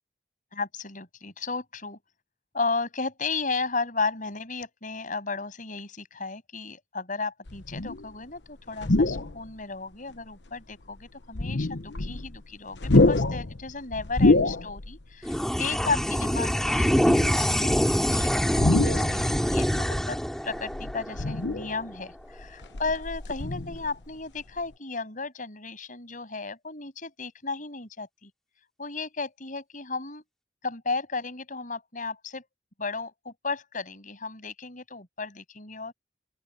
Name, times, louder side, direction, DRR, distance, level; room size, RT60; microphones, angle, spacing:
voice 1, 0.5-2.0 2.5-20.2 20.4-28.3 28.8-30.2 30.6-32.5 32.8-35.9, left 4 dB, 50° left, 7.8 m, -34 dB
sound 1, 7.5-8.1 8.7-9.5 10.1-10.2 11.2-12.4 12.7-15.0 15.3-15.4 16.7-17.5 18.5-19.4 20.5-21.9 22.3-24.1 24.4-24.6, left 2 dB, 85° left, 1.1 m, -26 dB
sound 2, 15.2-22.0, equal, 5° left, 2.8 m, -25 dB
open air
head